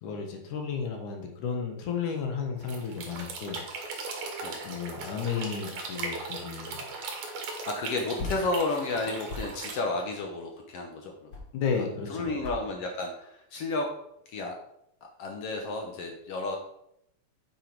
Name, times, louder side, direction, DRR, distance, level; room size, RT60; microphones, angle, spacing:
voice 1, 0.0-3.6 4.6-6.8 8.2-8.3 11.5-12.3, left 6 dB, 85° left, 2 dB, 2.8 m, -33 dB
sound 1, 2.6-9.8, right 3 dB, 75° right, 2.8 m, -38 dB
sound 2, 7.2-12.0 12.3-12.7 13.0-13.5 13.9-14.3, left 2 dB, 50° left, 1.3 m, -40 dB
voice 2, 7.7-11.3 12.1-13.9 14.3-14.6 15.2-16.6, left 2 dB, 65° left, 2 dB, 1.6 m, -32 dB
8.7 x 4.9 x 4.5 m, 0.77 s
omnidirectional pair, 3.4 m